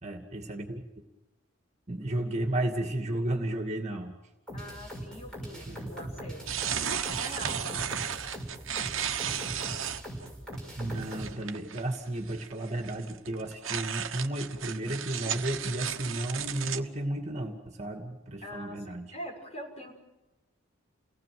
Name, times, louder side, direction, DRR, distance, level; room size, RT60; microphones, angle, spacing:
voice 1, 0.0-0.8 1.9-4.1 5.7-5.9 10.8-19.1, right 1 dB, 35° right, 4 dB, 2.5 m, -33 dB
voice 2, 4.5-7.9 18.4-19.9, equal, 35° left, 0 dB, 6.7 m, -44 dB
sound 1, 4.5-11.3, equal, 5° left, 6.2 m, -40 dB
sound 2, 6.5-10.3 10.5-10.6 10.9-12.0 12.3-16.8, right 8 dB, 70° right, 1.3 m, -34 dB
30.0 x 18.5 x 7.8 m, 1.0 s
head